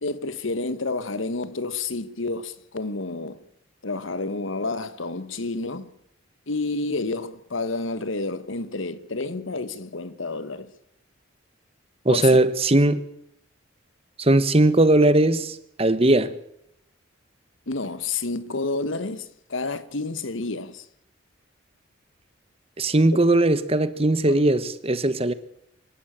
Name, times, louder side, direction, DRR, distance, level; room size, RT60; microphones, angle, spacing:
voice 1, 0.0-3.4 3.8-5.9 6.5-10.7 12.1-12.4 17.7-20.9 23.1-23.2 24.2-24.4, left 3 dB, 70° left, 1.3 m, -30 dB
voice 2, 12.0-13.0 14.2-16.3 22.8-25.3, right 2 dB, 30° right, 1.2 m, -19 dB
25.0 x 12.5 x 8.8 m
head